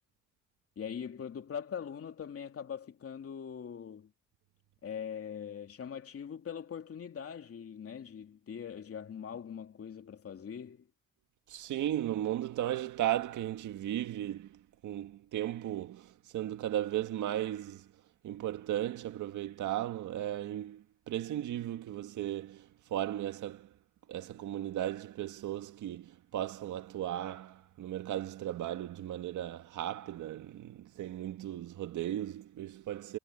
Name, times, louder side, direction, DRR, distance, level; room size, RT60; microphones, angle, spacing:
voice 1, 0.8-4.1 4.8-10.9, left 7 dB, 50° left, 2.8 m, -42 dB
voice 2, 11.5-17.9 18.2-23.7 24.1-33.2, right 12 dB, 80° right, 1.9 m, -36 dB
cardioid pair, 90°, 30 cm